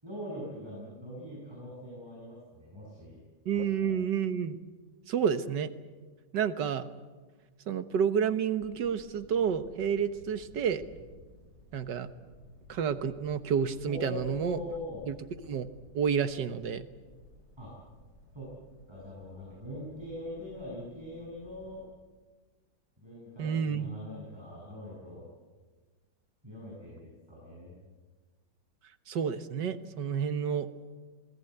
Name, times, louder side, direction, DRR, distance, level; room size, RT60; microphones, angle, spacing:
voice 1, 0.0-3.2 3.5-4.0 13.9-15.0 17.6-17.7 18.3-18.5 18.9-21.8 23.0-25.3 26.4-27.7, left 1 dB, 15° right, -5 dB, 7.4 m, -42 dB
voice 2, 3.4-4.6 5.1-5.7 6.3-6.9 7.7-10.8 11.7-12.1 12.7-14.6 15.1-15.2 15.4-15.7 15.9-16.9 23.4-23.9 29.1-30.7, right 7 dB, 85° right, 10 dB, 1.8 m, -30 dB
sound 1, 8.6-21.8, equal, 65° left, 7.5 m, -56 dB
27.5 x 20.5 x 8.0 m, 1.3 s
omnidirectional pair, 1.8 m